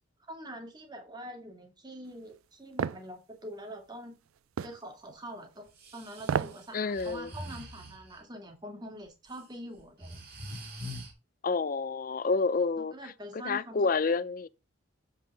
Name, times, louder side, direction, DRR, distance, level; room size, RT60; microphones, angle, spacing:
voice 1, 0.2-4.2 4.6-5.7 5.9-10.2 12.8-14.2, right 1 dB, 20° right, 1.9 m, -44 dB
sound 1, 2.8-3.0 4.6-4.8 6.2-6.6 7.0-7.1, right 7 dB, 90° right, 0.4 m, -30 dB
Breathing, 5.7-8.2 9.1-9.4 9.8-11.1, equal, 45° right, 2.6 m, -44 dB
voice 2, 6.7-7.3 11.4-13.0 13.3-14.5, left 4 dB, 45° left, 0.4 m, -29 dB
7.5 x 5.5 x 4.6 m
head